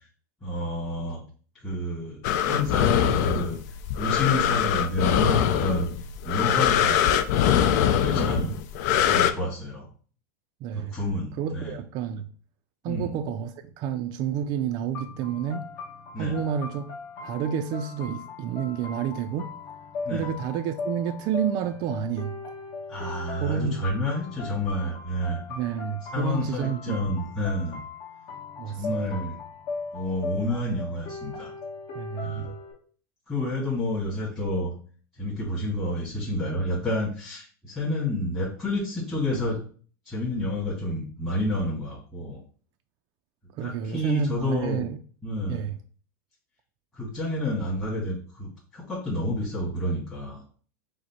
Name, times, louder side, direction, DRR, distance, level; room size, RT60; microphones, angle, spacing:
voice 1, 0.4-1.2 1.6-3.6 4.0-5.9 6.2-7.1 7.9-8.6 9.0-9.9 10.7-11.8 12.9-13.1 16.1-16.4 20.0-20.3 22.9-25.4 26.1-27.8 28.7-29.4 29.9-31.5 32.2-32.5 33.3-34.7 35.2-39.6 40.0-42.4 43.6-44.9 45.2-45.7 46.9-50.4, left 1 dB, 15° left, 1.9 m, -29 dB
sound 1, 2.2-9.3, left 10 dB, 60° left, 0.4 m, -23 dB
voice 2, 8.1-8.5 10.6-10.9 11.4-12.3 12.8-15.7 16.2-16.9 17.2-19.5 20.1-22.3 23.4-23.8 25.5-27.1 28.6-29.2 31.9-32.6 43.6-45.0 45.5-45.8, right 8 dB, 45° right, 0.3 m, -30 dB
sound 2, 14.9-32.7, left 4 dB, 45° left, 1.3 m, -38 dB
4.9 x 2.1 x 4.3 m
supercardioid pair, 120°, 10 cm